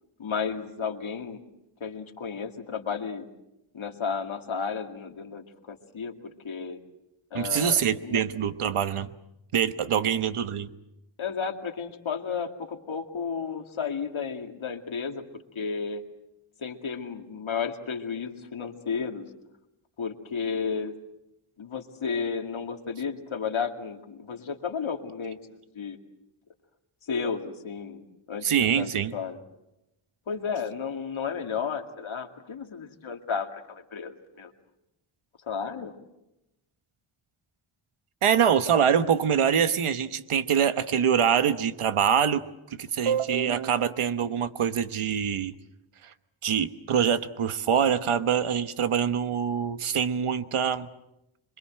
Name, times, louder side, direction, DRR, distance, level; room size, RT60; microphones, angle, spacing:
voice 1, 0.2-1.4 1.8-3.3 3.7-6.1 6.4-6.8 7.3-8.2 11.2-15.2 15.6-16.0 16.6-19.2 20.0-20.9 21.6-25.4 25.7-26.0 27.1-29.4 30.3-34.5 35.4-35.9, left 6 dB, 70° left, 4 dB, 2.3 m, -33 dB
voice 2, 7.3-9.1 9.5-10.7 28.4-29.1 38.2-42.4 42.8-45.5 46.4-50.9, right 8 dB, 90° right, 11 dB, 1.2 m, -24 dB
26.5 x 23.5 x 7.7 m, 0.89 s
wide cardioid pair, 145°, 49 cm